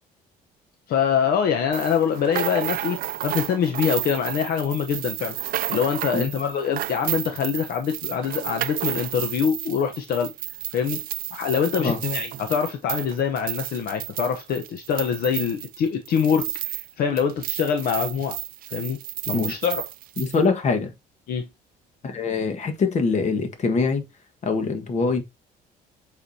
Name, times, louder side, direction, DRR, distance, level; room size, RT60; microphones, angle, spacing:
voice 1, 0.9-10.3 10.7-18.4 18.7-19.0 19.3-19.8 21.3-21.5, left 7 dB, 65° left, 1.0 m, -24 dB
sound 1, 1.7-16.9 17.2-20.4, right 14 dB, 55° right, 0.4 m, -32 dB
voice 2, 20.2-20.9 22.0-24.0 24.4-25.2, left 4 dB, 45° left, 1.6 m, -23 dB
7.9 x 4.9 x 2.8 m
cardioid pair, 110°, 17 cm